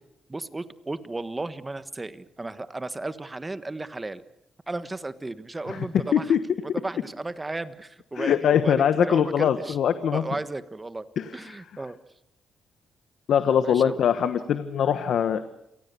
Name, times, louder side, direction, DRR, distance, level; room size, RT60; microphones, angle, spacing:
voice 1, 0.3-4.2 4.7-6.4 6.7-9.8 10.1-12.0 13.6-13.9, right 2 dB, 20° right, 13 dB, 1.4 m, -34 dB
voice 2, 8.1-10.2 11.2-11.6 13.3-15.4, left 8 dB, 75° left, 11 dB, 1.2 m, -22 dB
28.0 x 18.5 x 6.9 m, 0.83 s
cardioid pair, 90°, 0 cm